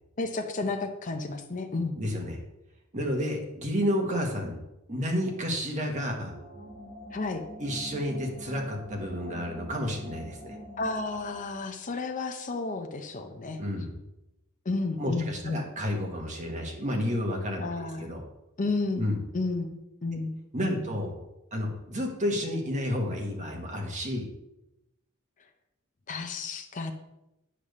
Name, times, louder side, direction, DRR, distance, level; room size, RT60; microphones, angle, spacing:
voice 1, 0.2-2.0 7.1-7.4 10.8-13.6 14.7-15.7 17.6-18.1 18.6-19.1 19.3-20.9 26.1-26.9, left 3 dB, 40° left, 4 dB, 0.6 m, -32 dB
voice 2, 1.9-2.4 2.9-4.6 4.9-6.3 7.6-10.6 13.6-13.9 15.0-17.6 18.0-18.2 19.0-19.2 20.5-21.1 21.5-24.2, equal, 35° right, 1 dB, 1.4 m, -30 dB
sound 1, 6.3-11.5, left 1 dB, 60° right, 1.7 m, -45 dB
8.7 x 3.4 x 6.6 m, 0.91 s
head